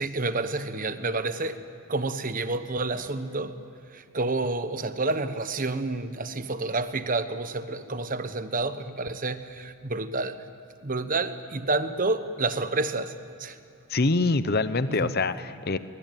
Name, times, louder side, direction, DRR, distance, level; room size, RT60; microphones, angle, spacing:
voice 1, 0.0-1.6 1.9-3.5 3.9-10.4 10.8-13.1 13.4-13.6 14.9-15.1, right 3 dB, 40° right, 11 dB, 1.1 m, -29 dB
voice 2, 13.9-15.8, left 3 dB, 45° left, 13 dB, 0.8 m, -25 dB
23.0 x 22.0 x 9.2 m, 2.6 s
head